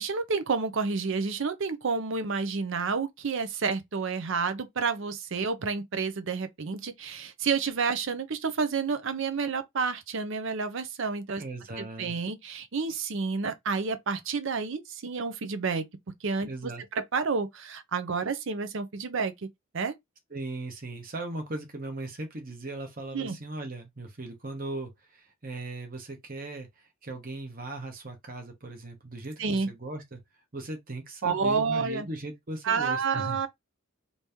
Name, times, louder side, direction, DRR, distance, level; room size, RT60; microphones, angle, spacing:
voice 1, 0.0-11.4 11.8-15.8 16.2-16.5 16.9-19.3 19.7-19.9 23.1-23.4 29.4-29.7 31.2-32.1 32.6-33.5, right 5 dB, 60° right, 0.6 m, -29 dB
voice 2, 11.4-12.2 16.4-16.8 20.3-30.2 30.5-33.5, right 2 dB, 40° right, 1.0 m, -38 dB
3.0 x 2.7 x 3.4 m
head